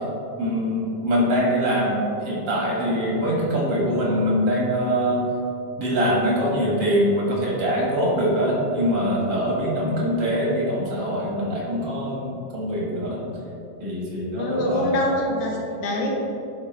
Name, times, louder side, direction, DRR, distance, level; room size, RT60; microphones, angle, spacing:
voice 1, 0.4-5.2 5.8-13.2 13.8-15.0, equal, 90° right, -4 dB, 2.3 m, -23 dB
voice 2, 14.4-16.1, left 1 dB, 90° left, -1 dB, 1.6 m, -24 dB
10.0 x 4.1 x 3.1 m, 2.7 s
omnidirectional pair, 2.0 m